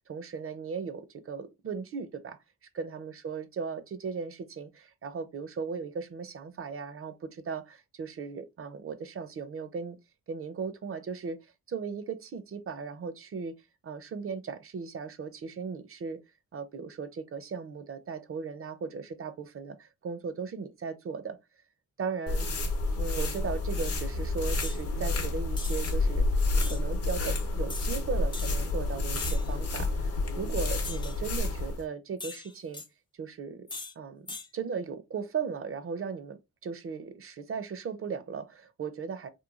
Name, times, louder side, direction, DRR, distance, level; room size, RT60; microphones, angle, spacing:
voice 1, 0.0-2.4 2.8-10.0 10.3-13.5 13.8-16.2 16.5-21.4 22.0-22.5 23.0-26.2 26.7-32.8 33.1-33.7 34.0-34.2 34.5-39.3, right 5 dB, 45° right, 0.5 m, -37 dB
sound 1, 22.3-31.8, left 2 dB, 45° left, 0.7 m, -29 dB
sound 2, 24.6-24.8 25.6-25.9 26.6-26.8 27.7-27.9 28.3-28.6 29.1-29.5 30.8-31.2 32.2-32.9 33.7-33.9 34.3-34.5, left 3 dB, 15° left, 0.3 m, -40 dB
3.0 x 2.2 x 2.3 m
cardioid pair, 80°, 32 cm